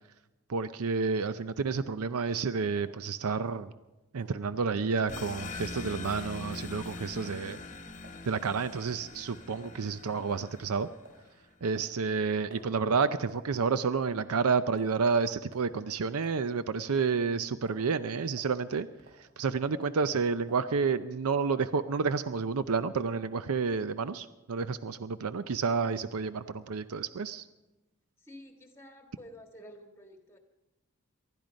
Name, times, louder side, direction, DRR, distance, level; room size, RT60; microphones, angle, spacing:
voice 1, 0.5-3.7 4.1-7.6 8.3-10.9 11.6-18.9 19.1-27.5, right 5 dB, 80° right, 0.5 m, -30 dB
sound 1, 2.8-3.0 3.5-3.9 4.2-4.4 5.0-5.1 5.7-5.9 6.5-6.7 7.2-7.5 8.0-8.2 8.8-9.0 9.5-9.7 10.3-10.5 11.0-11.3 11.7-12.7 13.3-13.5 14.0-14.4 14.8-15.0 15.5-15.7 16.2-16.4 16.9-17.3 17.7-17.9 18.4-18.6 19.0-19.2 19.8-20.0 20.5-20.7, right 2 dB, 45° right, 3.7 m, -55 dB
sound 2, 5.1-11.3, left 3 dB, 35° left, 0.9 m, -43 dB
voice 2, 28.2-30.4, equal, 10° left, 1.7 m, -50 dB
19.5 x 12.5 x 5.2 m
head